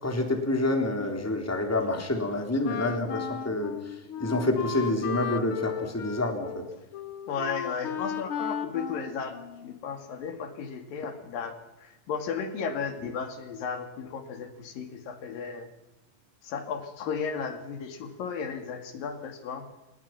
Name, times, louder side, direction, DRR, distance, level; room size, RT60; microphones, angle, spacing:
voice 1, 0.0-6.6, left 2 dB, 5° left, 3 dB, 3.1 m, -28 dB
Wind instrument woodwind instrument, 2.6-9.8, left 8 dB, 65° left, 1.3 m, -35 dB
voice 2, 7.3-15.7 16.4-19.7, left 6 dB, 80° left, 7 dB, 4.0 m, -35 dB
27.5 x 20.0 x 5.9 m, 1.0 s
omnidirectional pair, 4.0 m